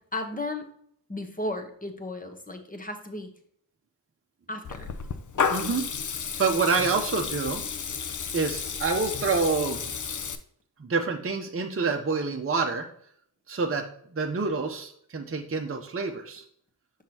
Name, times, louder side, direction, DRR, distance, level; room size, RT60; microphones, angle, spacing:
voice 1, 0.1-0.7 1.1-3.3 4.5-4.9, left 2 dB, 20° left, 5 dB, 1.1 m, -34 dB
Water tap faucet / Liquid, 4.6-10.4, left 6 dB, 45° left, 0.6 m, -32 dB
voice 2, 5.5-5.8 6.4-7.6 8.3-9.9 10.8-12.9 13.5-13.9 14.1-16.4, right 4 dB, 30° right, 2 dB, 0.8 m, -27 dB
5.9 x 5.6 x 2.9 m, 0.64 s
cardioid pair, 45°, 42 cm